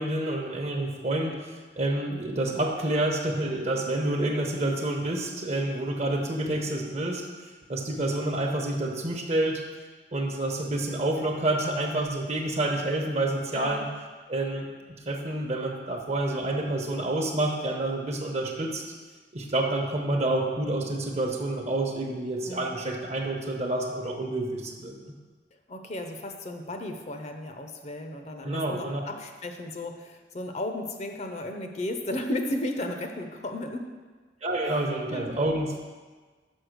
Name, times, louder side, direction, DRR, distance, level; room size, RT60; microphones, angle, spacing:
voice 1, 0.0-9.6 10.1-13.9 14.3-14.7 15.0-18.8 19.3-25.1 28.4-29.0 34.4-35.8, right 1 dB, 40° right, 2 dB, 0.9 m, -28 dB
voice 2, 22.5-22.8 25.7-33.9 35.1-35.3, left 1 dB, 40° left, 5 dB, 0.7 m, -34 dB
6.3 x 5.4 x 6.5 m, 1.4 s
head